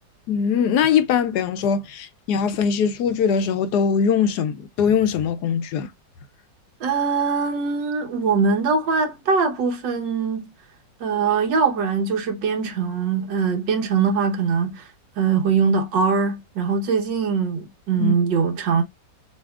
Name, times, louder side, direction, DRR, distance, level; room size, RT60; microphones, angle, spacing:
voice 1, 0.3-5.9 18.0-18.1, left 7 dB, 75° left, 1.1 m, -21 dB
voice 2, 6.8-10.5 11.0-14.9 15.2-18.8, right 5 dB, 85° right, 1.8 m, -22 dB
6.6 x 2.9 x 2.3 m
omnidirectional pair, 1.9 m